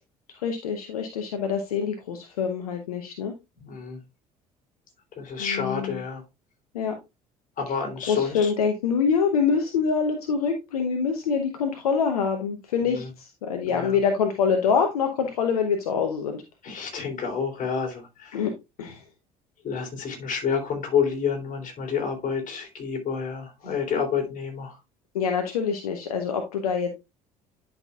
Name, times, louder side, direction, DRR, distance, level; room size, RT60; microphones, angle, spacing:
voice 1, 0.3-3.3 5.4-6.0 6.7-6.9 7.7-7.8 8.1-16.4 18.3-18.5 18.8-19.0 23.6-23.7 25.1-26.9, left 6 dB, 80° left, 0.9 m, -25 dB
voice 2, 3.6-4.0 5.2-6.2 7.6-8.5 13.7-14.0 16.6-18.4 19.6-24.7, left 6 dB, 45° left, 3.4 m, -29 dB
10.5 x 5.9 x 2.3 m
figure-of-eight pair, 55°, 19 cm